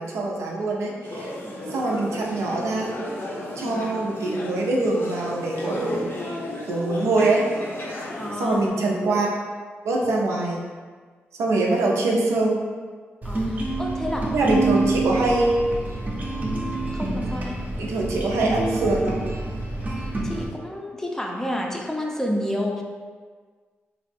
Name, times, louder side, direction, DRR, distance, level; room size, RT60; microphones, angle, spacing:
voice 1, 0.0-1.3 1.7-2.9 3.6-6.1 6.7-7.4 8.4-9.4 9.8-10.6 11.4-12.6 14.3-15.6 17.8-19.2, right 2 dB, 80° right, -2 dB, 0.4 m, -23 dB
sound 1, 1.0-8.7, left 1 dB, 55° left, 0.6 m, -34 dB
voice 2, 8.2-8.6 13.2-14.3 16.9-17.6 20.2-22.8, left 1 dB, 10° left, -1 dB, 0.4 m, -30 dB
sound 2, 13.2-20.5, right 2 dB, 40° right, 0.6 m, -27 dB
2.5 x 2.0 x 3.3 m, 1.5 s
cardioid pair, 60°, 5 cm